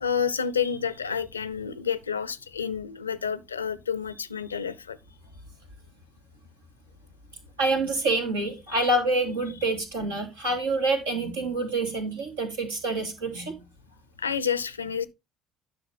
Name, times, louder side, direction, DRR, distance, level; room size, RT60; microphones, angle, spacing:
voice 1, 0.0-5.0 8.7-8.9 14.2-15.1, left 7 dB, 85° left, 0.5 m, -29 dB
voice 2, 7.6-13.5, right 2 dB, 80° right, 2.4 m, -27 dB
10.5 x 6.3 x 3.5 m
figure-of-eight pair, 55°, 0 cm